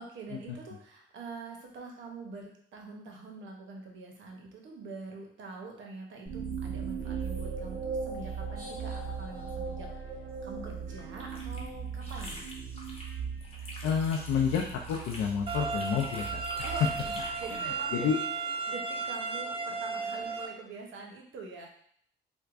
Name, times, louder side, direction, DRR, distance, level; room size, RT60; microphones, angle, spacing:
voice 1, 0.0-12.5 16.6-18.1 18.7-21.7, right 3 dB, 75° right, 1 dB, 0.8 m, -45 dB
sound 1, 6.3-17.8, right 5 dB, 45° right, 1.3 m, -38 dB
sound 2, 11.0-13.1 13.4-17.6, left 1 dB, 30° left, 0.9 m, -46 dB
voice 2, 13.8-16.3 17.9-18.2, left 7 dB, 85° left, 0 dB, 0.4 m, -29 dB
sound 3, 15.5-20.5, right 4 dB, 25° right, 0.4 m, -34 dB
4.5 x 2.2 x 2.4 m, 0.64 s
cardioid pair, 90°, 20 cm